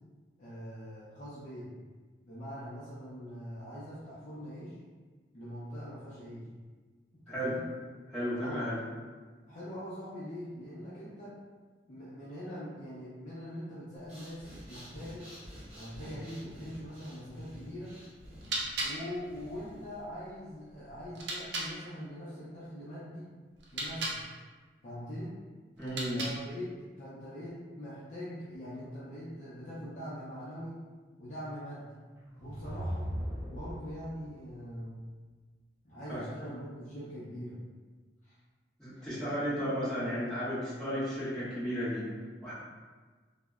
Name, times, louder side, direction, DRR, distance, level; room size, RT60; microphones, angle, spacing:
voice 1, 0.4-1.7 2.2-4.8 5.3-6.4 7.1-7.6 8.4-8.8 9.4-11.3 11.9-15.3 15.7-17.9 18.8-23.3 23.7-24.2 24.8-25.3 25.8-26.7 27.0-30.8 31.2-31.9 32.4-33.1 33.5-35.0 35.8-37.6 38.2-38.4 38.9-39.0, equal, 45° left, -10 dB, 0.5 m, -43 dB
voice 2, 7.3-7.6 8.1-8.8 25.8-26.2 36.1-36.3 38.8-42.1 42.4-42.5, equal, 5° left, -14 dB, 1.2 m, -34 dB
Breathing, 14.0-20.0, equal, 35° right, 1.1 m, -50 dB
sound 1, 18.2-21.7 23.6-24.2 25.8-26.6, right 2 dB, 70° right, 0.5 m, -38 dB
sound 2, 32.1-34.2, equal, 15° right, 0.4 m, -38 dB
3.0 x 2.0 x 2.3 m, 1.4 s
head